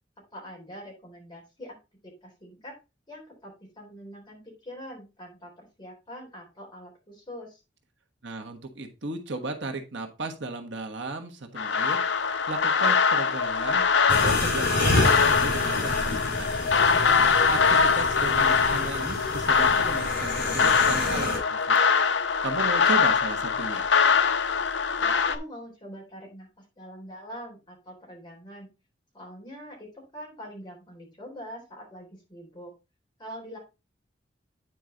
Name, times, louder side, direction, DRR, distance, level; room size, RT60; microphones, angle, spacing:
voice 1, 0.3-1.8 2.0-2.7 3.1-7.6 17.1-17.7 24.9-28.7 29.1-32.7 33.2-33.6, equal, 25° left, -1 dB, 3.6 m, -44 dB
voice 2, 8.2-12.0 12.5-16.5 17.5-21.8 22.4-23.9, right 3 dB, 80° right, 4 dB, 1.3 m, -35 dB
sound 1, 11.6-25.4, left 5 dB, 75° left, 0.7 m, -23 dB
sound 2, 14.1-21.4, left 2 dB, 55° left, 4.1 m, -28 dB
9.2 x 4.7 x 3.8 m, 0.27 s
head